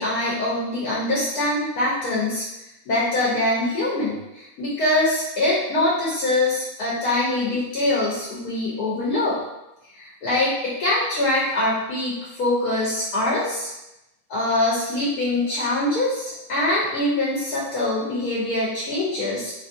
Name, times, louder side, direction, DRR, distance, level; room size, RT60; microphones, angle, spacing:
voice 1, 0.0-2.4 2.9-9.4 9.9-13.7 14.3-19.5, left 1 dB, 85° left, -7 dB, 1.2 m, -23 dB
3.0 x 2.6 x 2.5 m, 0.91 s
omnidirectional pair, 1.6 m